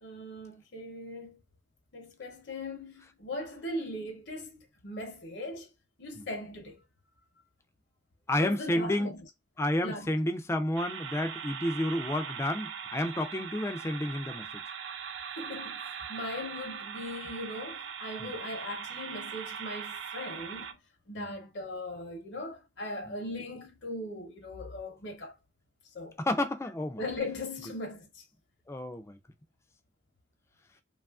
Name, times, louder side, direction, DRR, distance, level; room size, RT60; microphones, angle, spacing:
voice 1, 0.0-1.4 1.9-5.7 6.0-6.8 8.4-9.2 9.8-10.1 15.4-20.8 21.1-25.3 25.9-26.2 27.0-28.2, left 1 dB, 65° left, 0.8 m, -39 dB
voice 2, 8.3-9.1 9.6-14.5 18.2-18.3 21.2-21.3 26.2-27.0 28.7-29.2, left 1 dB, 15° left, 0.4 m, -30 dB
sound 1, 10.8-20.7, right 7 dB, 65° right, 0.3 m, -40 dB
2.9 x 2.4 x 2.3 m
head